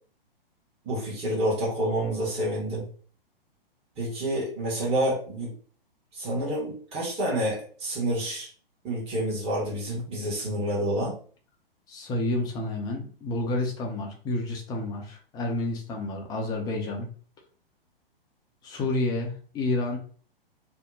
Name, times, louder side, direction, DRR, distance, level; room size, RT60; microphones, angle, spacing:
voice 1, 0.9-2.8 4.0-5.5 6.1-8.5 8.8-11.1, right 1 dB, 20° right, -5 dB, 1.1 m, -28 dB
voice 2, 11.9-17.1 18.6-20.0, left 2 dB, 15° left, 1 dB, 0.5 m, -30 dB
2.8 x 2.2 x 3.5 m, 0.43 s
figure-of-eight pair, 115°, 29 cm